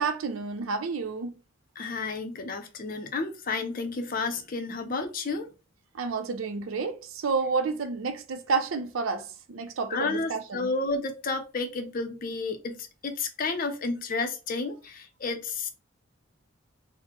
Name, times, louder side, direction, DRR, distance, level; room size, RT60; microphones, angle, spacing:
voice 1, 0.0-1.3 5.9-10.7, right 4 dB, 75° right, 0.5 m, -30 dB
voice 2, 1.8-5.5 9.9-15.7, left 3 dB, 45° left, 0.6 m, -31 dB
4.0 x 2.1 x 3.0 m
head